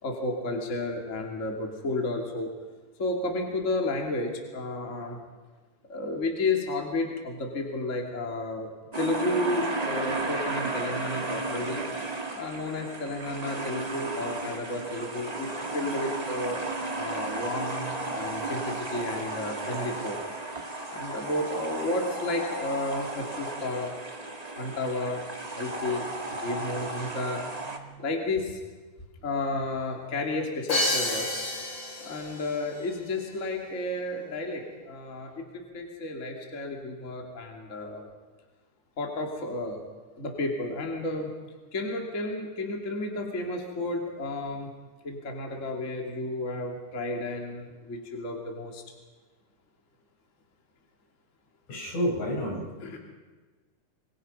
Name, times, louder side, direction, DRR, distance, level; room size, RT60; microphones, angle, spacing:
voice 1, 0.0-2.5 3.0-5.2 5.9-8.7 9.0-11.8 12.3-15.5 15.7-16.6 17.0-20.2 20.9-23.9 24.6-25.2 25.6-26.0 26.4-27.4 27.7-28.4 29.2-31.3 32.1-34.6 34.9-35.3 35.7-38.0 39.0-39.8 40.2-41.3 41.7-44.7 45.0-48.8 52.8-53.0, left 2 dB, 25° left, 1 dB, 2.7 m, -32 dB
sound 1, 8.9-27.8, right 2 dB, 25° right, 0.8 m, -34 dB
Crash cymbal, 30.7-32.5, left 1 dB, 40° left, 4.1 m, -29 dB
voice 2, 51.7-52.6, equal, 65° left, 0 dB, 6.0 m, -29 dB
26.0 x 23.5 x 5.5 m, 1.3 s
omnidirectional pair, 3.7 m